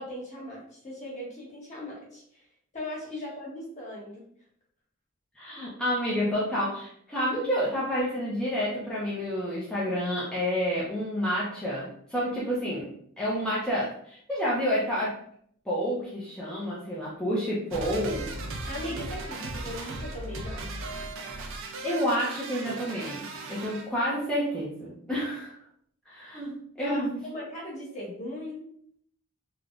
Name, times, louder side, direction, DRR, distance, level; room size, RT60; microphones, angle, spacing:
voice 1, 0.0-2.4 2.7-4.2 18.7-20.8 26.8-28.6, left 1 dB, 30° left, -5 dB, 1.0 m, -38 dB
voice 2, 5.4-12.9 13.2-15.2 15.7-18.3 21.6-25.5 26.1-27.2, equal, 5° left, -8 dB, 0.5 m, -29 dB
sound 1, 17.7-23.9, right 2 dB, 60° right, 0.4 m, -37 dB
3.3 x 2.1 x 2.4 m, 0.64 s
head